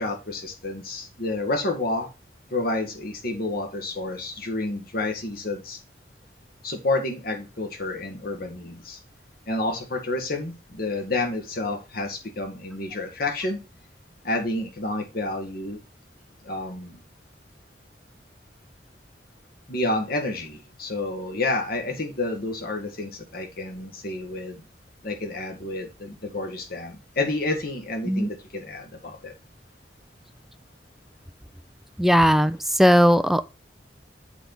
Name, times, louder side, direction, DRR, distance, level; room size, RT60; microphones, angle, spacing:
voice 1, 0.0-2.1 2.5-5.8 6.6-9.0 9.5-13.6 14.2-15.8 16.4-17.0 19.7-24.6 25.0-29.3, left 2 dB, 60° left, 1.8 m, -29 dB
voice 2, 32.0-33.4, equal, ahead, 0.4 m, -18 dB
8.2 x 4.0 x 4.4 m
head